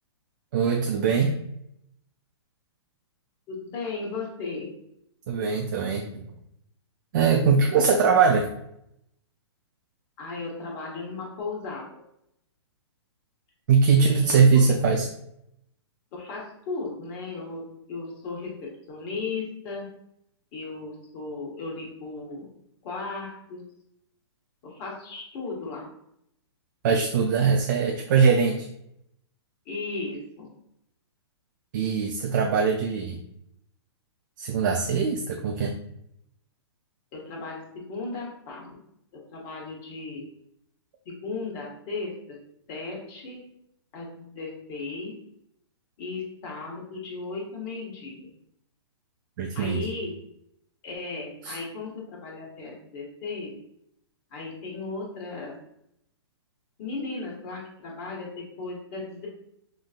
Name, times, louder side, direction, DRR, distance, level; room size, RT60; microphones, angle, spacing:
voice 1, 0.5-1.4 5.3-6.3 7.1-8.5 13.7-15.1 26.8-28.7 31.7-33.2 34.4-35.7 49.4-49.8 51.4-51.6, right 5 dB, 45° right, 2 dB, 0.4 m, -21 dB
voice 2, 3.5-4.7 10.2-11.9 13.9-14.7 16.1-19.9 20.5-22.5 22.8-23.6 24.6-25.9 29.6-30.5 37.1-38.8 39.1-40.2 41.0-42.3 42.7-43.4 43.9-45.1 46.0-48.3 49.5-50.1 50.8-53.5 54.3-55.5 56.8-59.3, left 3 dB, 35° left, -2 dB, 1.2 m, -36 dB
5.6 x 2.6 x 2.5 m, 0.77 s
hypercardioid pair, 145°, 14 cm